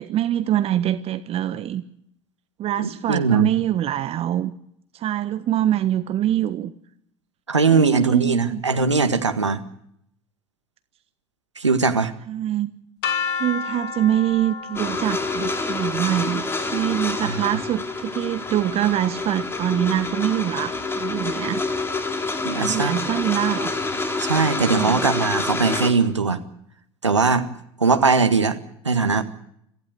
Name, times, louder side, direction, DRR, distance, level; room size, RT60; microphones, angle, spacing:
voice 1, 0.0-1.8 2.6-4.5 4.9-6.7 7.7-8.6 12.3-12.7 13.3-16.4 16.7-21.6 22.5-23.7 24.7-25.0, right 12 dB, 40° right, 11 dB, 1.3 m, -24 dB
voice 2, 2.8-3.5 7.5-9.6 11.6-12.1 17.2-17.4 22.4-23.0 24.2-26.4 27.0-27.5 27.8-28.6 28.8-29.2, right 4 dB, 90° right, 8 dB, 1.7 m, -20 dB
sound 1, 13.0-18.9, left 6 dB, 60° left, 2.3 m, -33 dB
sound 2, 14.8-25.9, left 3 dB, 15° left, 3.9 m, -27 dB
26.0 x 15.5 x 8.1 m, 0.71 s
figure-of-eight pair, 70°, 15 cm